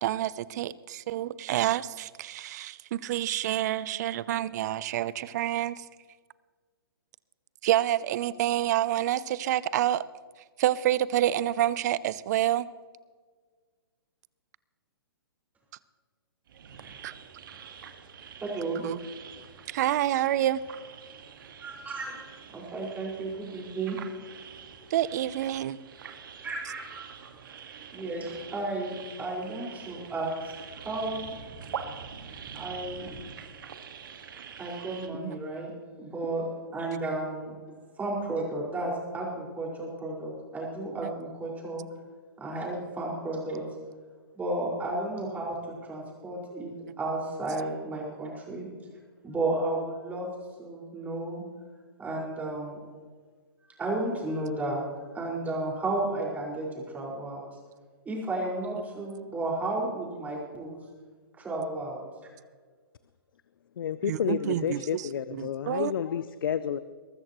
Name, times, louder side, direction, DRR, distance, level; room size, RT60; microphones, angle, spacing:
voice 1, 0.0-5.8 7.6-10.0 10.6-12.6 17.0-17.1 18.8-19.0 19.7-20.6 24.9-25.8 35.2-35.4 41.0-41.1 64.1-65.0 65.3-65.9, right 13 dB, 45° right, 19 dB, 0.6 m, -28 dB
sound 1, 16.5-35.1, right 7 dB, 60° right, 1.7 m, -45 dB
voice 2, 18.4-18.8 21.6-22.2 22.5-24.0 26.4-27.0 27.6-30.3 30.7-31.3 32.5-33.2 34.6-35.7 36.0-36.4 36.7-37.5 38.0-41.8 42.4-43.6 44.3-48.7 49.2-50.3 50.6-51.4 52.0-52.8 53.8-54.8 55.1-57.4 58.0-60.8 61.4-62.0, right 2 dB, 15° right, -3 dB, 5.2 m, -33 dB
voice 3, 63.8-66.8, left 8 dB, 65° left, 14 dB, 0.6 m, -30 dB
22.0 x 13.5 x 3.1 m, 1.5 s
hypercardioid pair, 130°, 12 cm